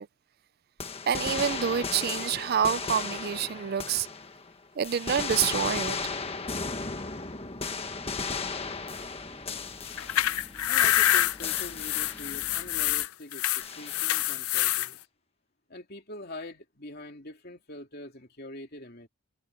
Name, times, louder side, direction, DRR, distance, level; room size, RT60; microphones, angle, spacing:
sound 1, 0.8-4.5 4.8-10.6 10.8-12.5 13.6-14.3, left 4 dB, 25° left, 1.4 m, -35 dB
voice 1, 1.1-4.1 4.8-6.0, right 8 dB, 45° right, 0.3 m, -27 dB
sound 2, 7.9-13.1, equal, 10° left, 1.7 m, -51 dB
sound 3, 9.9-14.9, left 13 dB, 80° left, 0.5 m, -26 dB
voice 2, 10.7-15.0 15.7-19.1, left 1 dB, 45° left, 2.9 m, -44 dB
head